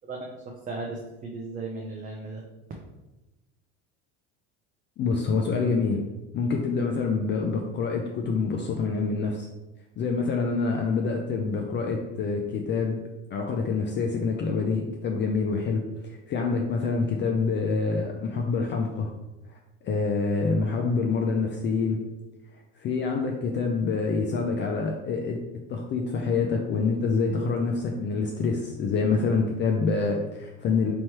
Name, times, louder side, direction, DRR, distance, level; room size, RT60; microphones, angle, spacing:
voice 1, 0.7-2.4, right 3 dB, 20° right, 0 dB, 0.5 m, -36 dB
voice 2, 5.0-6.0 6.3-9.5 10.0-13.0 13.3-19.1 19.8-22.0 22.8-25.4 25.7-30.9, left 4 dB, 35° left, 1 dB, 0.4 m, -26 dB
3.1 x 3.0 x 4.4 m, 1.0 s
supercardioid pair, 120°, 36 cm